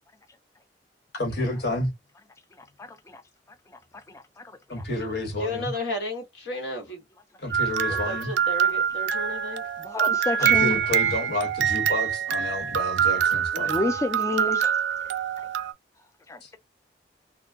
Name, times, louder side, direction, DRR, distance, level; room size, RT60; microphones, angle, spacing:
voice 1, 1.1-1.9 4.7-5.7 7.4-8.3 10.4-13.9 16.4-16.5, left 1 dB, 65° left, 1.3 m, -30 dB
voice 2, 2.8-3.2 4.1-4.4 4.7-4.8 9.8-10.8 13.5-14.6 16.3-16.4, left 2 dB, 15° left, 0.3 m, -29 dB
voice 3, 5.4-7.0 7.9-9.6, left 1 dB, 80° left, 1.4 m, -33 dB
sound 1, 7.5-15.7, right 8 dB, 80° right, 0.4 m, -25 dB
2.3 x 2.3 x 3.4 m
head